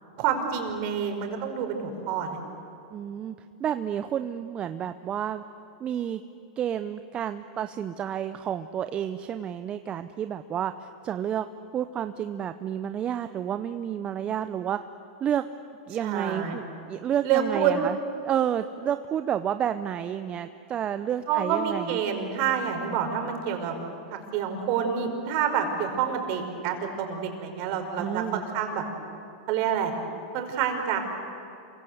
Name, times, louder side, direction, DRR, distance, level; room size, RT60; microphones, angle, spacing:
voice 1, 0.2-2.4 16.0-16.6 17.2-17.7 21.3-23.7 24.1-28.8 29.5-29.9 30.3-31.0, right 8 dB, 50° right, 4 dB, 5.1 m, -28 dB
voice 2, 2.9-3.3 3.6-5.4 5.8-6.2 6.6-11.5 11.7-14.8 15.2-15.4 15.9-18.0 18.2-22.0 28.0-28.4, right 9 dB, 30° right, 10 dB, 0.8 m, -30 dB
28.0 x 24.0 x 8.1 m, 2.7 s
hypercardioid pair, 110°, 4 cm